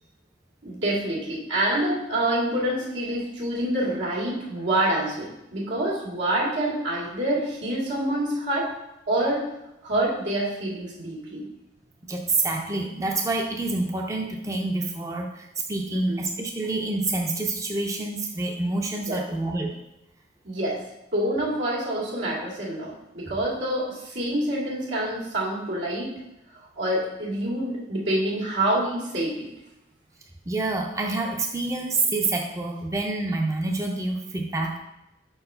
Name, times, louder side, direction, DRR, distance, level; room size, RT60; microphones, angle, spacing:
voice 1, 0.6-8.7 9.1-9.5 9.8-11.5 15.9-16.2 19.1-19.2 20.4-20.8 21.1-26.1 26.5-29.5, right 1 dB, 90° right, -6 dB, 2.3 m, -27 dB
voice 2, 12.1-19.8 30.5-34.8, right 2 dB, 15° right, 1 dB, 0.5 m, -27 dB
4.7 x 4.6 x 5.4 m, 0.89 s
head